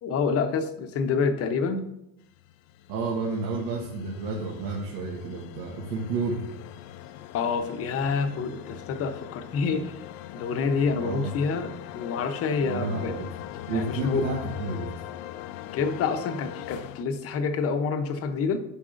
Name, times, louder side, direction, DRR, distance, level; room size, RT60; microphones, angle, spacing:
voice 1, 0.0-1.8 7.3-10.0 10.3-13.2 13.7-14.2 15.7-18.6, left 5 dB, 30° left, 7 dB, 0.7 m, -27 dB
sound 1, 2.3-17.0, left 13 dB, 60° left, 0.5 m, -41 dB
voice 2, 2.9-6.4 11.0-11.3 12.6-13.3 13.7-14.9, right 3 dB, 75° right, -3 dB, 1.4 m, -31 dB
9.7 x 5.9 x 2.5 m, 0.82 s
supercardioid pair, 140°, 47 cm